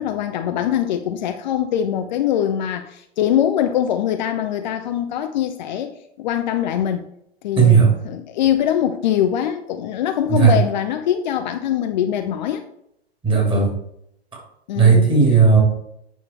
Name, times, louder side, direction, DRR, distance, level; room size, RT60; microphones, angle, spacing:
voice 1, 0.0-7.1 7.4-12.6 14.7-15.4, left 10 dB, 45° left, 0.7 m, -23 dB
voice 2, 7.6-7.9 10.3-10.5 13.2-13.7 14.8-15.6, right 5 dB, 15° right, 2.8 m, -14 dB
9.2 x 5.9 x 4.4 m
figure-of-eight pair, 100°, 32 cm